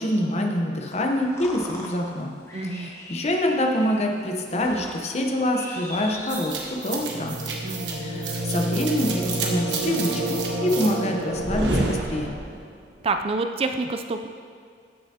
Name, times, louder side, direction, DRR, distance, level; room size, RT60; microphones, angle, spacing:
voice 1, 0.0-2.3 2.7-7.4 7.9-12.3, left 1 dB, 40° left, 2 dB, 0.8 m, -26 dB
sound 1, 0.9-7.1, left 1 dB, 15° left, 1.0 m, -41 dB
voice 2, 2.5-2.9 7.6-8.0 13.0-14.3, right 3 dB, 35° right, 7 dB, 0.4 m, -27 dB
sound 2, 6.3-12.6, right 2 dB, 90° right, 1.2 m, -28 dB
13.5 x 6.8 x 2.8 m, 2.2 s
head